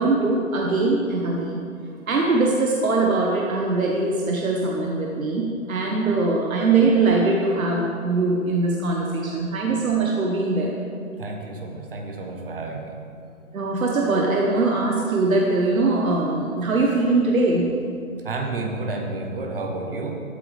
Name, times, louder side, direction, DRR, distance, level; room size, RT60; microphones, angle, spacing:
voice 1, 0.0-1.6 2.1-10.7 13.5-17.7, right 3 dB, 70° right, -1 dB, 1.3 m, -22 dB
voice 2, 11.2-12.9 18.2-20.1, right 3 dB, 40° right, 3 dB, 1.1 m, -30 dB
12.5 x 8.2 x 3.4 m, 2.4 s
hypercardioid pair, 165°, 42 cm